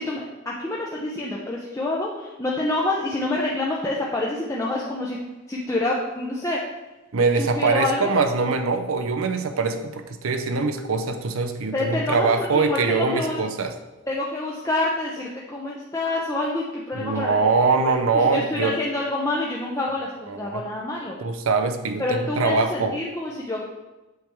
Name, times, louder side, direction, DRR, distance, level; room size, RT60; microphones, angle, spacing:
voice 1, 0.0-5.2 5.5-6.6 7.3-8.2 11.7-13.4 14.1-17.4 17.8-21.2 22.0-23.6, left 2 dB, 15° left, -3 dB, 0.5 m, -27 dB
voice 2, 7.1-13.7 16.9-18.7 20.3-20.6 21.2-23.0, right 4 dB, 90° right, 8 dB, 0.6 m, -23 dB
7.9 x 3.4 x 4.5 m, 1.1 s
head